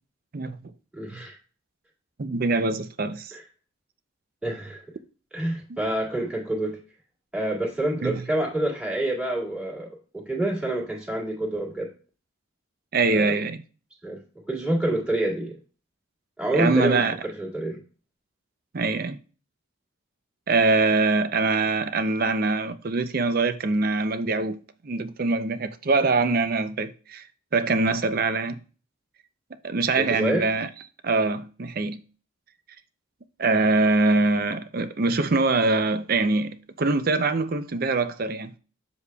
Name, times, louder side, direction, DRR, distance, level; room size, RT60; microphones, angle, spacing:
voice 1, 0.3-0.7 1.1-1.2 2.2-3.3 5.7-5.8 8.0-8.2 12.9-13.6 16.5-17.2 18.7-19.2 20.5-27.3 27.5-28.6 29.6-30.7 31.0-32.0 33.4-38.5, right 3 dB, 45° right, 0.5 m, -23 dB
voice 2, 0.9-1.4 3.3-3.4 4.4-4.8 5.3-6.8 7.3-11.9 13.0-13.3 14.0-14.2 14.5-15.6 16.4-17.8 30.0-30.5, right 1 dB, 5° right, 2.0 m, -27 dB
8.2 x 7.0 x 2.3 m
head